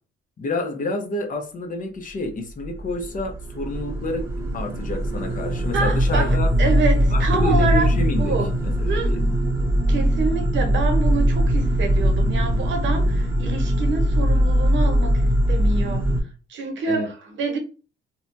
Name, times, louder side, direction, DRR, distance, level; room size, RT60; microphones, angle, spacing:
voice 1, 0.4-4.3 4.5-6.5 7.1-8.4 8.6-9.3 16.9-17.1, left 1 dB, 40° left, 0.7 m, -28 dB
sound 1, 2.6-16.2, equal, 10° right, 0.7 m, -21 dB
voice 2, 5.7-7.9 8.2-8.5 8.9-9.2 9.9-16.1 16.5-17.6, right 4 dB, 70° right, 0.8 m, -27 dB
2.8 x 2.2 x 2.6 m
cardioid pair, 90°, 20 cm